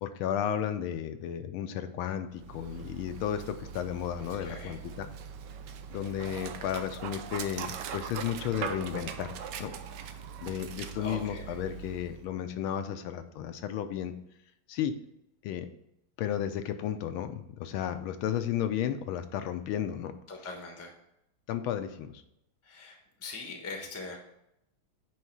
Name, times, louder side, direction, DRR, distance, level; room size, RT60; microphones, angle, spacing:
voice 1, 0.0-5.1 5.9-9.3 9.6-9.7 10.4-14.1 14.7-14.9 15.4-15.7 16.2-20.1 21.5-22.1, left 9 dB, 80° left, 8 dB, 1.4 m, -33 dB
Dog, 2.3-12.3, right 7 dB, 75° right, 1.0 m, -41 dB
voice 2, 4.4-4.7 10.9-11.5 20.3-20.9 22.6-24.2, left 3 dB, 15° left, 1 dB, 0.6 m, -41 dB
9.4 x 3.2 x 4.6 m, 0.81 s
omnidirectional pair, 2.4 m